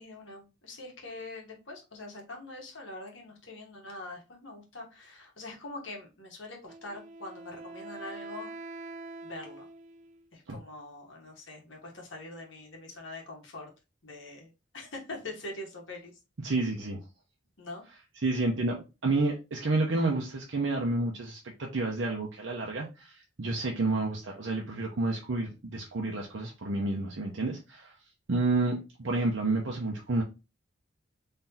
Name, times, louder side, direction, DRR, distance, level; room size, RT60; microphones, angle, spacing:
voice 1, 0.0-8.6 9.2-9.7 10.3-13.7 14.0-16.1 17.6-17.8, left 2 dB, 90° left, 1.4 m, -43 dB
Wind instrument woodwind instrument, 6.7-10.3, right 3 dB, 40° right, 0.3 m, -44 dB
voice 2, 16.4-17.0 18.2-27.9 28.3-30.2, right 2 dB, 75° right, 0.7 m, -30 dB
3.9 x 3.2 x 2.8 m
head